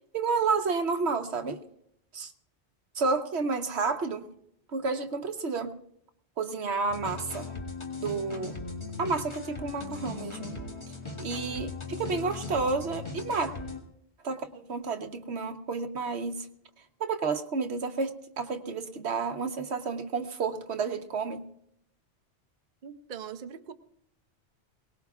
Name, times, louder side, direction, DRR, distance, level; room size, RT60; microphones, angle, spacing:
voice 1, 0.1-1.6 2.1-2.3 2.9-4.3 4.7-5.7 6.4-7.5 8.0-8.6 9.0-10.6 11.2-13.5 14.2-16.5 17.0-21.4, right 4 dB, 70° right, 6 dB, 1.3 m, -30 dB
sound 1, 6.9-13.8, left 3 dB, 25° left, 1.9 m, -38 dB
voice 2, 9.9-10.3 22.8-23.7, right 7 dB, 50° right, 8 dB, 0.7 m, -43 dB
22.0 x 19.0 x 2.4 m, 0.74 s
omnidirectional pair, 1.2 m